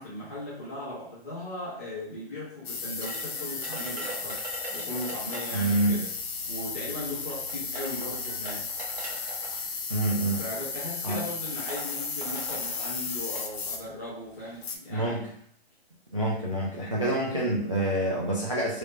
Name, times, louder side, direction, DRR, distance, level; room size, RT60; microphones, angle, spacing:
voice 1, 0.0-4.4 4.7-6.1 6.5-8.7 10.4-15.2, left 1 dB, 15° left, -10 dB, 0.7 m, -38 dB
sound 1, 2.6-13.9 14.4-14.8, left 5 dB, 70° left, 0.7 m, -35 dB
sound 2, 3.0-5.8 6.8-6.9 7.5-9.6 10.5-10.8 11.1-11.2 11.5-13.5, right 3 dB, 60° right, 1.1 m, -41 dB
voice 2, 5.5-6.0 9.9-10.4 11.0-11.2 14.9-15.3 16.1-18.8, right 1 dB, 30° right, -5 dB, 0.4 m, -27 dB
3.1 x 2.4 x 3.1 m, 0.64 s
hypercardioid pair, 180°, 32 cm